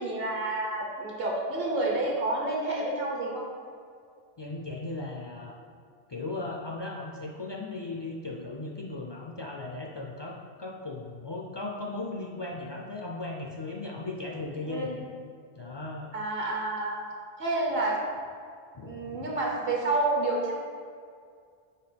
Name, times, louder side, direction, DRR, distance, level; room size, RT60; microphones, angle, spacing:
voice 1, 0.0-3.5 14.7-15.0 16.1-17.0 17.4-18.0 18.8-20.5, right 2 dB, 70° right, -2 dB, 1.1 m, -29 dB
voice 2, 4.4-5.5 6.1-15.1 15.6-16.1 18.7-19.3, left 2 dB, 45° left, -1 dB, 0.3 m, -37 dB
5.7 x 3.3 x 5.0 m, 2.2 s
omnidirectional pair, 1.0 m